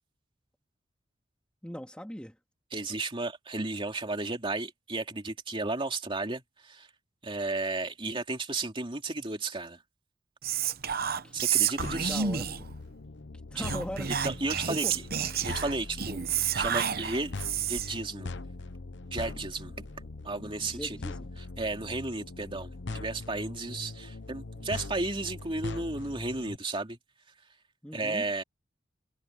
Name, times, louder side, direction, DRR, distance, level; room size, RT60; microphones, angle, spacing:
voice 1, 1.6-2.3 11.2-11.4 12.0-12.7 13.5-14.1 14.7-14.9 20.6-21.3 27.8-28.2, equal, 5° left, 2.3 m, -39 dB
voice 2, 2.7-6.9 7.2-9.8 11.3-12.2 13.5-13.6 14.2-15.0 15.4-16.2 16.5-17.3 17.7-18.3 19.1-19.9 20.2-21.0 21.4-27.0 27.9-28.4, right 3 dB, 25° right, 2.8 m, -33 dB
Whispering, 10.4-12.7 13.6-18.0, right 8 dB, 50° right, 1.0 m, -30 dB
sound 1, 11.8-26.6, left 3 dB, 65° left, 0.9 m, -41 dB
head